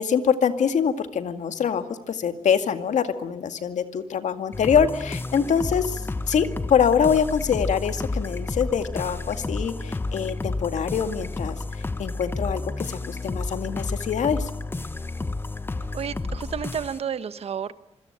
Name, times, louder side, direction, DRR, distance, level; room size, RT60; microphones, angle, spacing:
voice 1, 0.0-14.5, left 7 dB, 80° left, 9 dB, 2.2 m, -24 dB
sound 1, 4.5-17.0, left 2 dB, 20° left, 1.0 m, -31 dB
voice 2, 15.9-17.7, right 7 dB, 55° right, 13 dB, 1.2 m, -31 dB
26.5 x 25.5 x 8.9 m, 0.75 s
wide cardioid pair, 165°, 12 cm